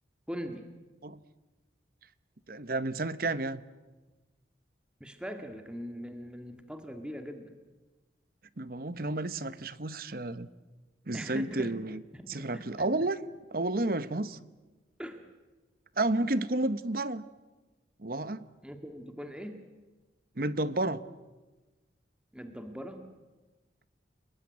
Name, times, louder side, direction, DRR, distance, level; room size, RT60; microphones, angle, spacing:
voice 1, 0.3-0.7 5.0-7.5 11.1-11.7 12.1-12.9 15.0-15.2 18.6-19.6 22.3-23.0, equal, 5° right, 6 dB, 1.8 m, -41 dB
voice 2, 2.5-3.6 8.6-10.5 11.1-12.0 12.3-13.2 13.5-14.4 16.0-17.2 18.0-18.4 20.4-21.0, right 2 dB, 50° right, 15 dB, 1.0 m, -31 dB
30.0 x 19.5 x 9.6 m, 1.2 s
head